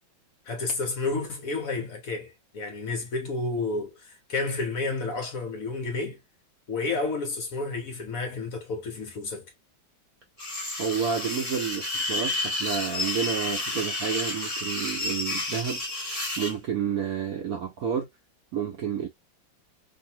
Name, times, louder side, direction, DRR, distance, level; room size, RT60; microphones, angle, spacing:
voice 1, 0.5-6.2 6.7-9.5, left 3 dB, 60° left, 0.9 m, -31 dB
sound 1, 10.4-16.5, left 2 dB, 20° left, 1.2 m, -31 dB
voice 2, 10.8-15.8 16.4-18.1 18.5-19.1, right 7 dB, 70° right, 0.8 m, -30 dB
2.7 x 2.7 x 2.7 m
omnidirectional pair, 2.1 m